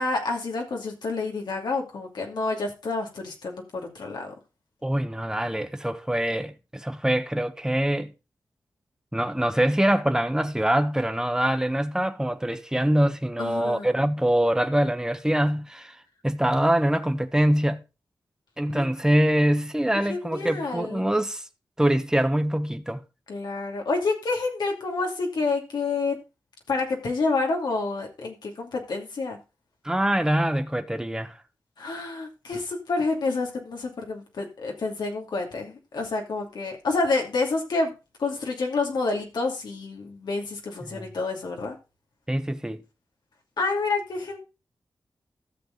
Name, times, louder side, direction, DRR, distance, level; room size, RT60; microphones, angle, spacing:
voice 1, 0.0-4.3 13.4-13.9 18.7-18.9 20.1-21.1 23.3-26.2 26.7-29.4 31.8-37.9 38.2-41.8 43.6-44.4, left 3 dB, 80° left, 2.6 m, -28 dB
voice 2, 4.8-8.1 9.1-16.0 16.2-17.8 18.6-21.4 21.8-23.0 29.8-31.4 40.9-41.1 42.3-42.8, right 1 dB, 10° right, 1.2 m, -24 dB
13.5 x 6.7 x 3.9 m
cardioid pair, 45°, 7 cm